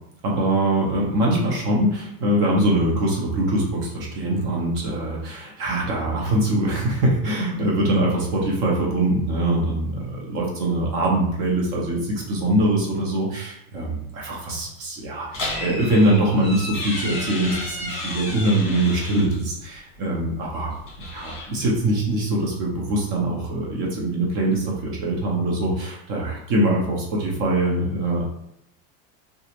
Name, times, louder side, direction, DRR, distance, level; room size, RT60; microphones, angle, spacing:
voice 1, 0.2-20.7 21.1-28.3, right 1 dB, 45° right, -2 dB, 0.8 m, -23 dB
sound 1, 15.3-19.4 20.7-21.9, left 2 dB, 30° left, 1.4 m, -32 dB
3.0 x 2.4 x 2.9 m, 0.78 s
supercardioid pair, 160°, 40 cm